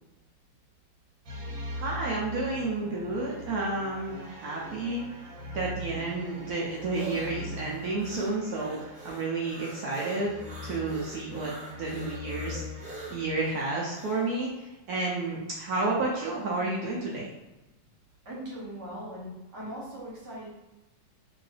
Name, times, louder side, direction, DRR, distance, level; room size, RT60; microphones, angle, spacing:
sound 1, 1.3-13.8, left 1 dB, 90° right, 1.5 m, -42 dB
voice 1, 1.8-5.0 5.5-10.3 10.6-12.6 12.9-17.3, right 3 dB, 70° right, -3 dB, 0.9 m, -31 dB
sound 2, 6.1-14.3, right 1 dB, 25° right, 1.1 m, -44 dB
voice 2, 18.2-20.5, right 1 dB, 45° right, -6 dB, 1.3 m, -40 dB
2.9 x 2.7 x 3.2 m, 1.0 s
omnidirectional pair, 2.1 m